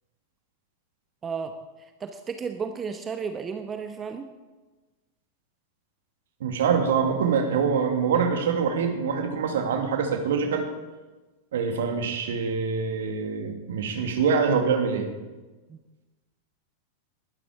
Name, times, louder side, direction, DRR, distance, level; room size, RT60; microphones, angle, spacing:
voice 1, 1.2-4.3 15.7-15.8, right 5 dB, 20° right, 7 dB, 1.1 m, -33 dB
voice 2, 6.4-10.6 11.5-15.1, right 6 dB, 60° right, 5 dB, 2.4 m, -25 dB
20.0 x 12.5 x 4.9 m, 1.2 s
figure-of-eight pair, 90°, 0 cm